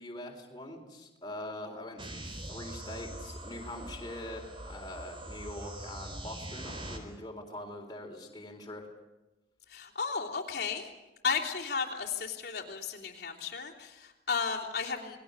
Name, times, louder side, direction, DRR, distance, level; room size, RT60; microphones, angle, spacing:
voice 1, 0.0-8.9, left 1 dB, 20° left, 0 dB, 3.9 m, -43 dB
sound 1, 2.0-7.0, right 1 dB, 30° right, 4.3 m, -43 dB
voice 2, 9.7-10.9 11.2-15.2, left 5 dB, 60° left, -3 dB, 3.3 m, -34 dB
29.0 x 20.5 x 7.0 m, 1.0 s
head